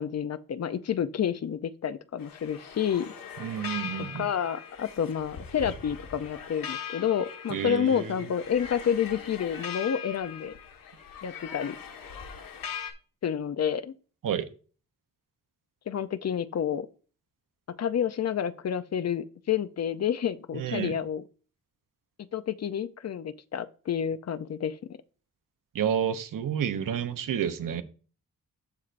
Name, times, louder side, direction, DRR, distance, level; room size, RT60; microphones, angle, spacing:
voice 1, 0.0-3.1 4.2-10.5 11.2-11.8 13.2-13.9 15.9-16.9 17.8-21.2 22.3-24.8, left 8 dB, 50° left, 0.5 m, -29 dB
sound 1, 2.2-12.9, left 7 dB, 80° left, 1.4 m, -41 dB
voice 2, 3.4-4.3 7.5-8.3 14.2-14.5 20.5-21.0 25.7-27.8, right 8 dB, 70° right, 0.8 m, -30 dB
13.5 x 4.5 x 2.5 m
wide cardioid pair, 155°, 34 cm